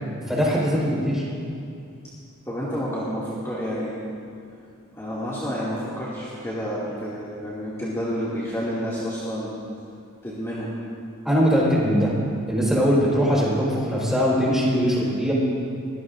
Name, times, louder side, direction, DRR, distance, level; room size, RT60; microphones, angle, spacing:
voice 1, 0.3-1.2 11.2-12.1 12.5-15.3, equal, ahead, -6 dB, 4.4 m, -21 dB
voice 2, 2.4-4.0 4.9-9.5 10.2-10.7, equal, 15° left, -10 dB, 2.3 m, -29 dB
22.5 x 17.0 x 2.6 m, 2.5 s
head